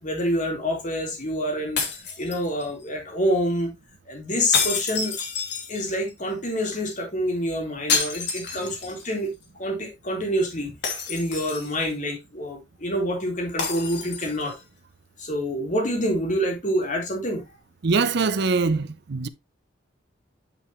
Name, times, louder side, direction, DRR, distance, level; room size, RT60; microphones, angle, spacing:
voice 1, 0.0-3.7 4.1-5.2 5.7-9.3 9.6-10.7 11.1-14.5 15.2-17.4, equal, 40° left, 2.8 m, -27 dB
sound 1, 1.8-2.8 4.5-6.1 7.9-9.1 9.4-9.5 10.8-11.9 13.6-14.5, left 5 dB, 60° left, 2.7 m, -28 dB
voice 2, 17.8-19.3, right 4 dB, 60° right, 0.6 m, -23 dB
8.8 x 5.6 x 3.1 m
head